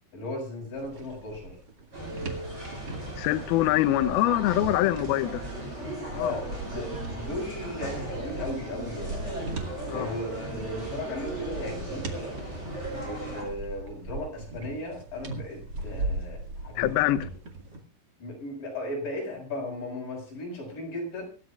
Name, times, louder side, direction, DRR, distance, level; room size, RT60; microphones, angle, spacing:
voice 1, 0.1-1.6 6.2-9.2 9.9-12.1 12.8-17.3 18.2-21.3, left 1 dB, 45° left, 8.0 m, -36 dB
sound 1, 0.7-17.8, right 2 dB, 40° right, 1.6 m, -39 dB
sound 2, 1.9-13.4, right 1 dB, 15° right, 7.0 m, -37 dB
voice 2, 3.2-5.4 6.1-6.3 9.9-10.1 16.8-17.2, left 15 dB, 85° left, 2.2 m, -24 dB
25.0 x 13.0 x 2.4 m
omnidirectional pair, 5.3 m